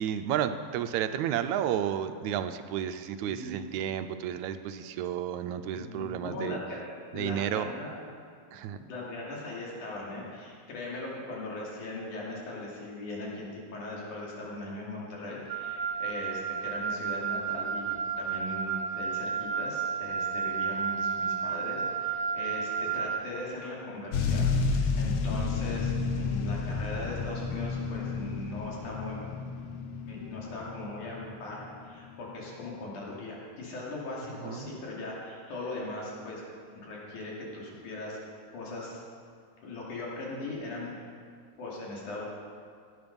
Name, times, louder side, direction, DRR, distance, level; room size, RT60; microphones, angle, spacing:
voice 1, 0.0-6.6 7.1-7.7 8.5-8.8 34.4-34.7, right 10 dB, 80° right, 9 dB, 1.9 m, -32 dB
voice 2, 5.7-6.8 7.1-7.9 8.5-24.5 24.9-29.2 30.1-36.4 36.8-38.2 38.5-39.0 39.6-41.0 41.6-42.2, left 2 dB, 85° left, -4 dB, 4.1 m, -39 dB
Wind instrument woodwind instrument, 15.5-23.3, right 6 dB, 65° right, 1.7 m, -32 dB
sound 1, 24.1-31.6 32.3-32.4, left 4 dB, 65° left, 1.6 m, -31 dB
17.5 x 9.2 x 5.3 m, 2.2 s
omnidirectional pair, 3.4 m